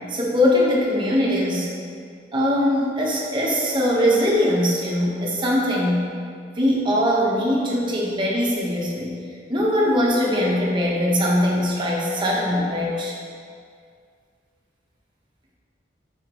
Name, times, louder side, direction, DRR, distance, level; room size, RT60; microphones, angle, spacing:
voice 1, 0.1-1.7 2.3-6.0 6.6-9.1 9.5-13.1, left 1 dB, 25° right, -4 dB, 1.2 m, -21 dB
11.5 x 4.4 x 3.1 m, 2.2 s
head